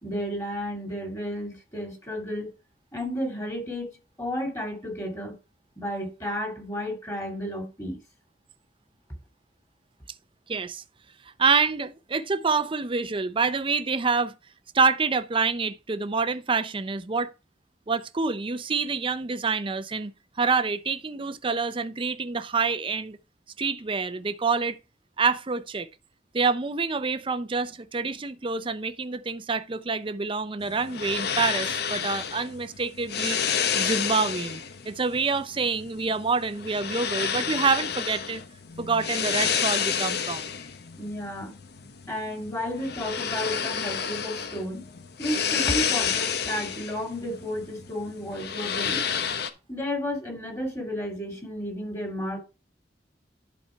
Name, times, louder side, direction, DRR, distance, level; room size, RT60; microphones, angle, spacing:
voice 1, 0.0-2.5 2.9-5.4 5.8-8.0 41.0-41.5 42.1-44.9 45.2-49.0 49.7-52.4, equal, 15° left, 2.6 m, -32 dB
voice 2, 10.5-10.8 11.4-14.3 14.7-17.3 17.9-20.1 20.4-23.2 23.6-24.8 25.2-25.9 26.3-33.4 33.8-38.4 38.8-40.5, right 4 dB, 30° right, 0.6 m, -27 dB
sound 1, 30.6-49.5, left 7 dB, 60° left, 0.9 m, -30 dB
11.0 x 4.3 x 4.5 m
head